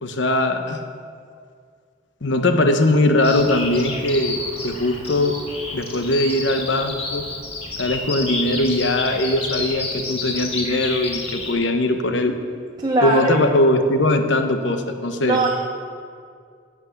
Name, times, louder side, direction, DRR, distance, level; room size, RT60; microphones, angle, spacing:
voice 1, 0.0-0.8 2.2-4.4 4.6-5.3 5.7-7.2 7.8-12.4 13.0-15.4, left 1 dB, 75° left, 6 dB, 1.0 m, -20 dB
Bird vocalization bird call bird song, 3.2-11.5, left 2 dB, 30° left, 1.7 m, -30 dB
voice 2, 12.8-13.4 15.3-15.5, right 2 dB, 20° right, -1 dB, 0.7 m, -19 dB
16.0 x 6.1 x 7.1 m, 2.2 s
head